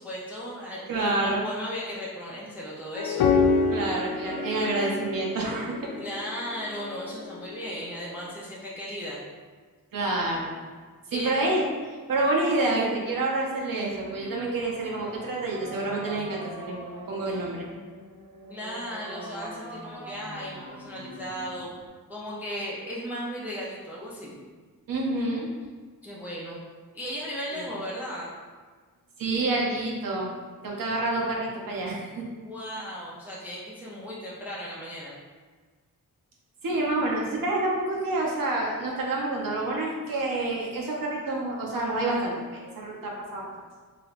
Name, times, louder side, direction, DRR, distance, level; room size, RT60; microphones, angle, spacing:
voice 1, 0.0-3.3 6.0-9.2 11.1-11.5 18.5-21.7 22.1-24.4 26.0-26.6 26.9-28.3 32.4-35.2, equal, 5° right, -6 dB, 0.4 m, -36 dB
voice 2, 0.9-1.4 3.7-5.7 9.9-10.5 11.1-11.7 12.1-16.8 17.1-17.7 24.9-25.5 27.5-27.7 29.2-30.3 30.6-32.3 36.6-43.5, right 2 dB, 70° right, -2 dB, 0.7 m, -28 dB
sound 1, 3.0-7.9, left 4 dB, 85° left, 0.5 m, -27 dB
sound 2, 13.9-21.9, right 1 dB, 90° right, 1.4 m, -43 dB
3.3 x 2.9 x 2.4 m, 1.5 s
wide cardioid pair, 175°, 36 cm